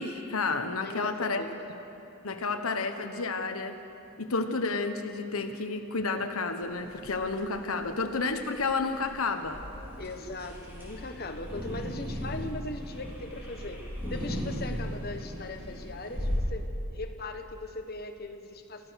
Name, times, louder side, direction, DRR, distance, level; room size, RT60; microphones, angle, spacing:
voice 1, 0.0-1.4 2.2-3.8 4.2-9.6, left 3 dB, 85° left, 7 dB, 1.2 m, -31 dB
voice 2, 0.8-1.6 10.0-18.9, left 2 dB, 45° left, 5 dB, 1.4 m, -39 dB
sound 1, 6.6-16.4, equal, 10° right, 4.8 m, -37 dB
28.5 x 14.5 x 6.5 m, 2.9 s
head